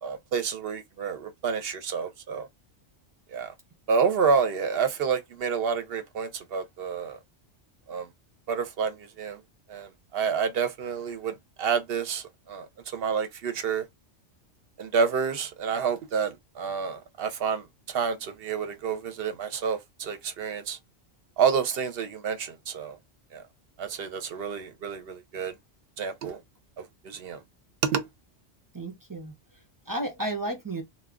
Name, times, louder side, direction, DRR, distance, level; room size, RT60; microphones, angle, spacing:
voice 1, 0.0-2.5 3.3-3.5 3.9-7.2 7.9-8.0 8.5-9.4 9.7-9.9 10.1-11.3 11.6-12.2 12.5-12.7 12.9-13.8 14.8-17.6 17.9-20.8 21.4-23.0 23.3-23.4 23.8-25.5 26.0-26.4 27.0-27.4 27.8-28.0, right 6 dB, 60° right, 0.7 m, -28 dB
voice 2, 28.7-30.8, right 1 dB, 30° right, 0.4 m, -33 dB
2.3 x 2.2 x 3.5 m
omnidirectional pair, 1.2 m